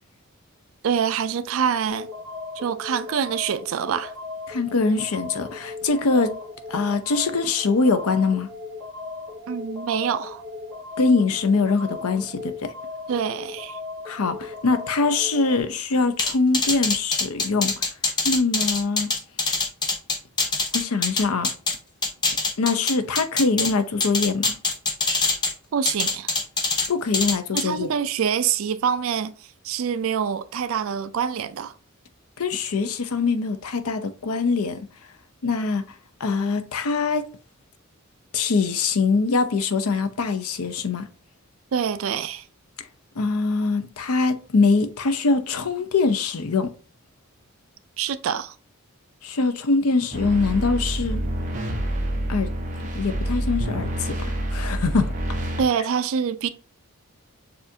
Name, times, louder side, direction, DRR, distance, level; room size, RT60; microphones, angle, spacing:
voice 1, 0.8-2.1 2.6-4.1 9.5-10.4 13.1-13.8 25.7-26.3 27.5-29.3 29.6-31.7 41.7-42.4 48.0-48.5 55.6-56.5, right 7 dB, 65° right, 0.4 m, -25 dB
sound 1, 1.9-15.6, left 3 dB, 15° right, 1.1 m, -37 dB
voice 2, 4.5-6.3 6.7-8.5 11.0-12.7 14.1-17.8 18.2-19.1 20.7-21.5 22.6-24.5 26.9-27.9 32.4-34.8 35.4-35.9 36.2-37.3 38.3-41.0 43.2-46.7 49.2-51.2 52.3-52.5 52.9-54.2 54.5-55.1, left 4 dB, 80° left, 0.6 m, -23 dB
sound 2, 16.2-21.8 22.0-23.7 24.0-25.5 25.9-26.9 27.1-27.6, left 3 dB, 20° left, 0.6 m, -23 dB
sound 3, 50.1-55.6, right 1 dB, 35° right, 0.8 m, -27 dB
6.8 x 2.4 x 2.7 m
head